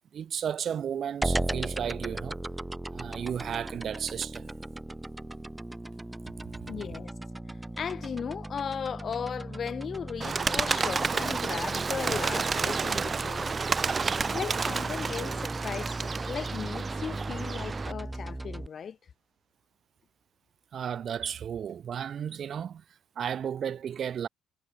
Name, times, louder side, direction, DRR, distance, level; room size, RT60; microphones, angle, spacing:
voice 1, 0.1-2.4 2.9-4.5 20.7-22.8 23.2-24.3, right 8 dB, 60° right, 0.7 m, -33 dB
sound 1, 1.2-18.7, right 2 dB, 15° right, 0.8 m, -37 dB
voice 2, 6.7-7.1 7.8-13.5 14.3-19.0, left 7 dB, 50° left, 3.1 m, -36 dB
Bird, 10.2-17.9, right 5 dB, 35° right, 0.4 m, -30 dB
cardioid pair, 90°, 0 cm